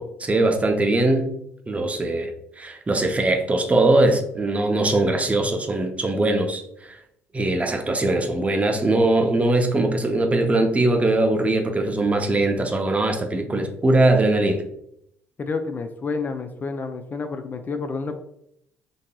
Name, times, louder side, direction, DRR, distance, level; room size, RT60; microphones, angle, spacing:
voice 1, 0.0-1.3 1.7-2.3 2.6-7.0 7.3-14.7, right 2 dB, 25° right, 5 dB, 0.5 m, -21 dB
voice 2, 15.4-18.2, left 4 dB, 30° left, 7 dB, 0.3 m, -29 dB
3.9 x 2.6 x 2.2 m, 0.74 s
hypercardioid pair, 65°, 6 cm